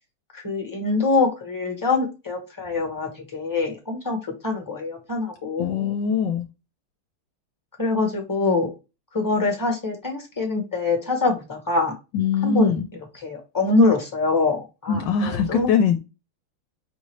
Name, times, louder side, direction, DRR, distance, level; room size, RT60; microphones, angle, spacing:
voice 1, 0.3-4.2 4.4-5.9 7.8-8.7 9.1-11.9 12.4-12.7 13.2-15.7, left 3 dB, 10° left, 1.1 m, -24 dB
voice 2, 5.6-6.5 12.1-12.9 14.9-16.0, left 6 dB, 70° left, 1.3 m, -22 dB
5.3 x 2.7 x 3.1 m
omnidirectional pair, 2.1 m